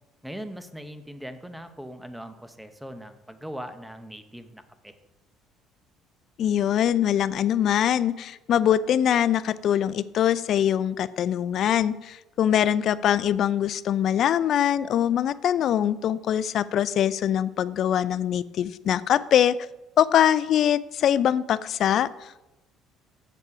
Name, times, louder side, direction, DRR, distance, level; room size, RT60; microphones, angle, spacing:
voice 1, 0.2-4.9, equal, 5° right, 9 dB, 0.9 m, -40 dB
voice 2, 6.4-19.6 20.0-22.4, left 10 dB, 60° left, 17 dB, 0.4 m, -23 dB
8.3 x 6.8 x 4.8 m, 0.98 s
supercardioid pair, 95°, 0 cm